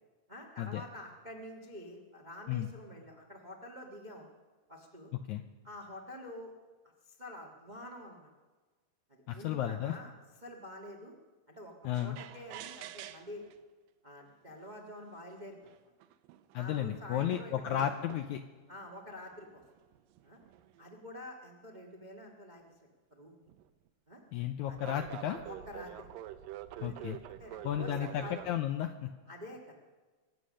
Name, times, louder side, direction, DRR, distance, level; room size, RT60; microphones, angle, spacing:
voice 1, 0.3-4.3 4.7-5.1 5.6-6.5 7.0-8.3 9.1-10.1 10.4-11.1 11.5-13.5 14.0-15.6 16.5-17.9 18.7-19.6 20.2-20.4 20.8-22.7 23.1-23.4 24.1-24.2 24.7-24.9 25.2-26.1 26.9-28.4 29.3-29.7, left 1 dB, 60° right, 1 dB, 0.4 m, -48 dB
voice 2, 9.3-9.9 11.8-12.2 16.5-18.4 24.3-25.4 26.8-27.2 27.6-29.1, left 11 dB, 85° left, 8 dB, 1.7 m, -33 dB
sound 1, 11.9-13.5 14.5-14.6 15.3-15.4 15.7-16.6 17.3-18.4 19.3-20.9 23.5-23.7 24.7-28.6, right 12 dB, 80° right, 2.3 m, -47 dB
24.0 x 8.5 x 6.4 m, 1.3 s
omnidirectional pair, 4.0 m